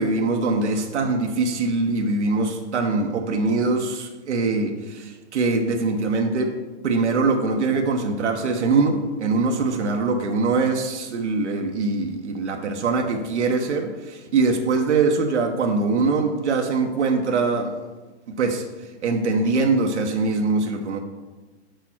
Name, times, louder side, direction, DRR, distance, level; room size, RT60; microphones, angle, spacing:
voice 1, 0.0-6.6 6.8-17.7 18.3-18.6 19.0-21.0, right 3 dB, 90° right, 3 dB, 1.1 m, -23 dB
6.7 x 4.6 x 6.1 m, 1.2 s
hypercardioid pair, 145°, 34 cm